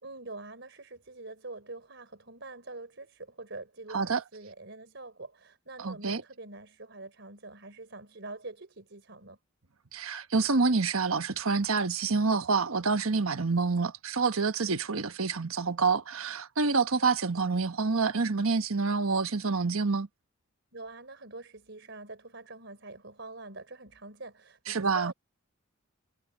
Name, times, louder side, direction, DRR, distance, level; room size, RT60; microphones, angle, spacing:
voice 1, 0.0-9.4 20.7-25.1, right 2 dB, 55° right, 4.5 m, -45 dB
voice 2, 3.9-4.2 5.8-6.2 9.9-20.1 24.7-25.1, right 4 dB, 80° right, 1.2 m, -27 dB
head